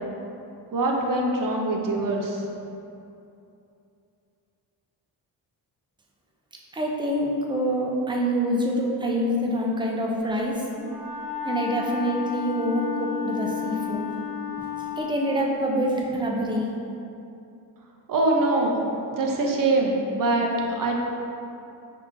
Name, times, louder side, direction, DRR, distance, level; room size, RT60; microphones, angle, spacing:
voice 1, 0.7-2.4 18.1-18.7 19.1-20.5 20.8-21.0, right 2 dB, 50° right, 0 dB, 0.6 m, -23 dB
voice 2, 6.7-10.7 11.4-14.1 14.6-14.7 15.0-16.7, equal, 10° right, -2 dB, 0.4 m, -26 dB
Wind instrument woodwind instrument, 10.8-15.2, left 7 dB, 65° left, 1.0 m, -32 dB
5.2 x 2.8 x 2.5 m, 2.8 s
cardioid pair, 105°, 41 cm